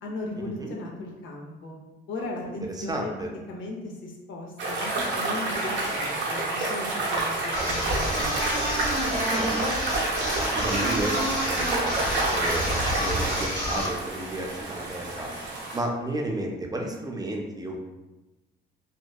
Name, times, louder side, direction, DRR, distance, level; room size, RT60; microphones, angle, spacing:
voice 1, 0.0-1.8 2.1-3.1 3.5-8.6, left 2 dB, 75° left, 0 dB, 0.6 m, -37 dB
voice 2, 2.4-3.3 9.3-9.9 10.4-15.3 15.7-17.8, right 1 dB, 20° right, 0 dB, 0.4 m, -33 dB
sound 1, 4.6-15.8, right 2 dB, 70° right, 0.7 m, -29 dB
sound 2, 7.5-14.0, equal, 40° left, 1.3 m, -29 dB
2.8 x 2.1 x 2.2 m, 1.1 s
cardioid pair, 90°, 20 cm